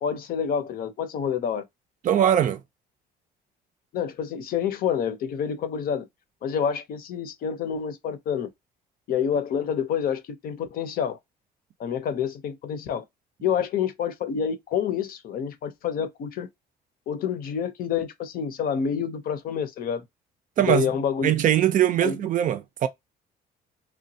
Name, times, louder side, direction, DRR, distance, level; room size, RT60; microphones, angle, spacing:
voice 1, 0.0-1.6 3.9-6.1 6.4-8.5 9.1-11.2 11.8-13.0 13.4-16.5 17.1-20.0 20.7-21.3 22.0-22.2, left 7 dB, 60° left, 0.6 m, -28 dB
voice 2, 2.0-2.6 20.6-20.9 21.2-22.9, right 10 dB, 50° right, 0.5 m, -21 dB
3.0 x 2.2 x 2.6 m
cardioid pair, 110°, 17 cm